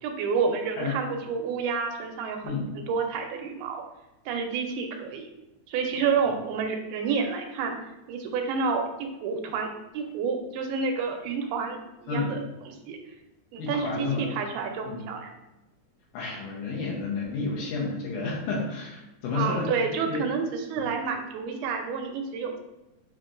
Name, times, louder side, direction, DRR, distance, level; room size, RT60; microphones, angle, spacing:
voice 1, 0.0-3.8 4.3-5.3 5.7-7.8 8.1-9.7 9.9-12.4 12.7-13.0 13.5-15.3 19.3-22.6, right 5 dB, 85° right, 3 dB, 2.5 m, -29 dB
voice 2, 13.6-14.3 14.9-15.0 16.1-19.7 20.1-20.2 20.8-20.9, left 4 dB, 75° left, -4 dB, 2.0 m, -31 dB
7.5 x 2.9 x 2.4 m, 0.96 s
omnidirectional pair, 4.4 m